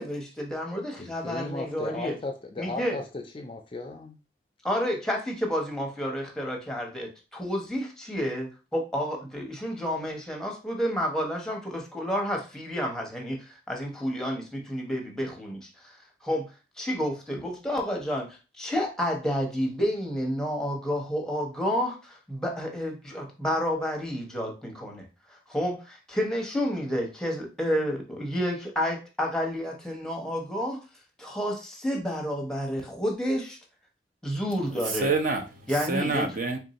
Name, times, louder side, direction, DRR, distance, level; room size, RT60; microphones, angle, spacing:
voice 1, 0.0-2.1 2.6-3.0 4.6-16.5 16.8-30.8 31.2-33.6 34.2-35.1 35.7-36.3, equal, 5° left, 0.8 m, -30 dB
voice 2, 1.0-4.2, left 2 dB, 30° left, 0.4 m, -36 dB
voice 3, 34.7-36.6, right 3 dB, 50° right, 0.7 m, -28 dB
3.5 x 2.6 x 4.0 m
head